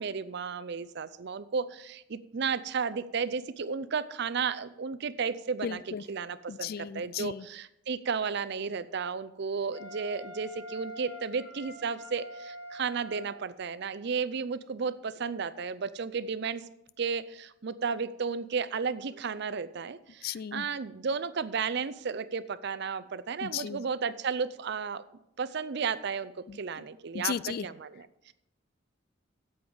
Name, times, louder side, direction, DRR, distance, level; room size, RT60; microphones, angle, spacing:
voice 1, 0.0-5.8 6.1-16.6 17.0-25.0 25.4-28.3, right 5 dB, 60° right, 14 dB, 0.6 m, -33 dB
voice 2, 5.6-6.0 6.5-7.5 20.2-20.7 23.4-23.8 26.5-26.8 27.1-27.7, left 8 dB, 50° left, 20 dB, 0.3 m, -35 dB
Wind instrument woodwind instrument, 9.7-13.5, left 1 dB, 75° left, 4.7 m, -45 dB
8.7 x 8.0 x 7.0 m, 0.83 s
head